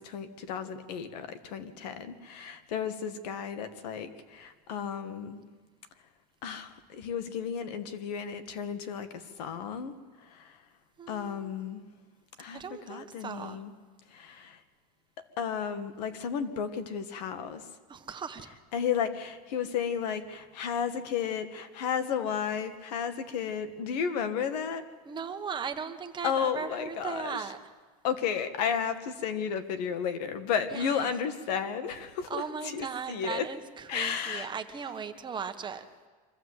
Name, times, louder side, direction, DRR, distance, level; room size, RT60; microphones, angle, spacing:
voice 1, 0.0-5.4 6.4-9.9 10.2-10.6 11.1-11.9 12.4-13.7 14.1-14.6 15.4-17.7 18.7-24.8 26.2-27.4 28.0-33.5 33.9-34.5, left 7 dB, 85° left, 9 dB, 1.9 m, -33 dB
voice 2, 11.0-11.5 12.5-13.6 17.9-18.5 25.0-27.6 30.7-31.1 32.3-35.8, right 6 dB, 20° right, 7 dB, 1.4 m, -38 dB
24.5 x 15.0 x 8.1 m, 1.4 s
supercardioid pair, 135°, 20 cm